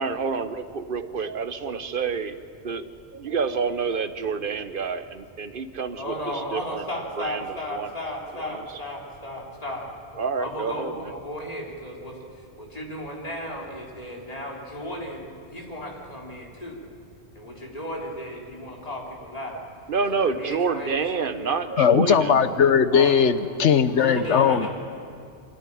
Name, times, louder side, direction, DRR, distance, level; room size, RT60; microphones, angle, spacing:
voice 1, 0.0-6.8 7.2-7.5 7.7-7.9 8.4-8.6 10.2-11.1 19.9-22.4, right 5 dB, 55° right, 11 dB, 1.0 m, -28 dB
voice 2, 6.0-9.9 10.4-16.8 17.4-19.6 20.1-21.5 22.9-23.2 24.0-24.7, left 1 dB, 35° left, -2 dB, 3.6 m, -35 dB
voice 3, 21.8-24.7, left 7 dB, 85° left, 11 dB, 1.2 m, -19 dB
25.0 x 13.0 x 10.0 m, 2.3 s
omnidirectional pair, 1.2 m